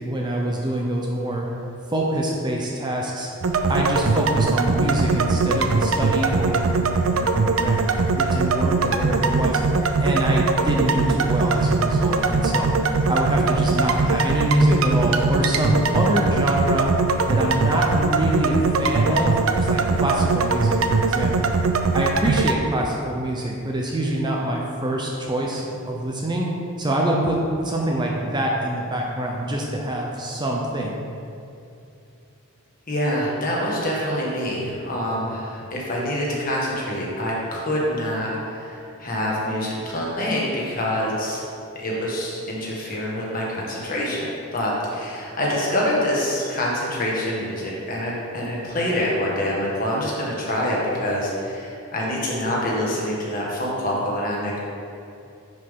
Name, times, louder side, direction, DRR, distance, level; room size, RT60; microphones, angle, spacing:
voice 1, 0.0-1.5 1.9-3.3 3.7-6.6 7.1-9.6 10.0-12.7 13.1-16.9 17.3-21.6 21.9-26.5 26.8-31.0, right 1 dB, 20° right, -1 dB, 0.7 m, -25 dB
sound 1, 3.4-22.6, right 4 dB, 70° right, 0.5 m, -21 dB
voice 2, 32.9-41.4 41.7-54.6, left 1 dB, 40° left, -4 dB, 1.7 m, -26 dB
10.0 x 5.4 x 3.8 m, 2.7 s
head